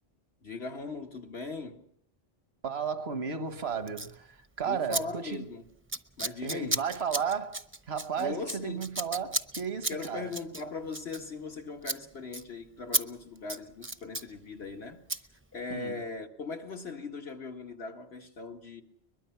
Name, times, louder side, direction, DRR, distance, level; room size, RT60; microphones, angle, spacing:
voice 1, 0.4-1.8 4.6-5.6 6.2-6.8 7.1-7.2 8.2-8.9 9.9-15.0 15.5-18.8, left 4 dB, 75° left, 2.2 m, -39 dB
voice 2, 2.6-5.5 6.4-10.3 15.7-16.0, right 6 dB, 80° right, 1.6 m, -34 dB
Scissors, 3.9-4.1 4.9-5.0 5.3-5.5 5.9-11.6 11.8-12.0 12.3-12.4 12.9-13.0 13.4-14.3 15.1-15.2, right 2 dB, 15° right, 0.7 m, -34 dB
22.5 x 22.0 x 5.8 m
omnidirectional pair, 1.1 m